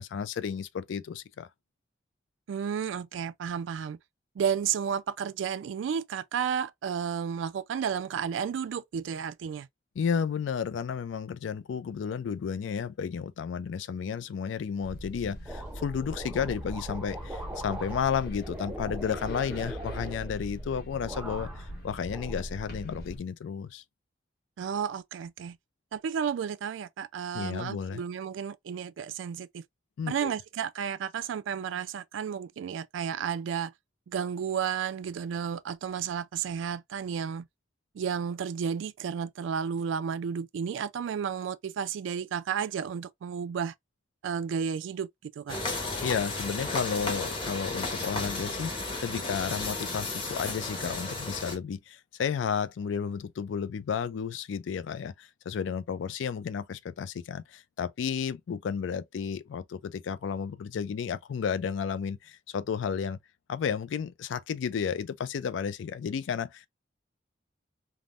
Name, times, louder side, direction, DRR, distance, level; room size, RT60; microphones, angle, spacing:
voice 1, 0.0-1.5 10.0-23.8 27.3-28.0 30.0-30.3 46.0-63.2 63.5-66.7, left 7 dB, 75° left, 0.3 m, -32 dB
voice 2, 2.5-4.0 4.4-9.7 24.6-25.6 25.9-29.6 30.1-33.7 34.1-37.5 37.9-43.7 44.2-45.6, right 7 dB, 80° right, 0.3 m, -32 dB
sound 1, 14.8-23.2, right 1 dB, 50° left, 1.1 m, -40 dB
sound 2, 15.5-20.7 21.0-21.8 22.1-23.0, right 1 dB, 10° right, 0.4 m, -42 dB
sound 3, 45.5-51.6, left 2 dB, 25° left, 0.8 m, -34 dB
3.5 x 2.1 x 2.4 m
head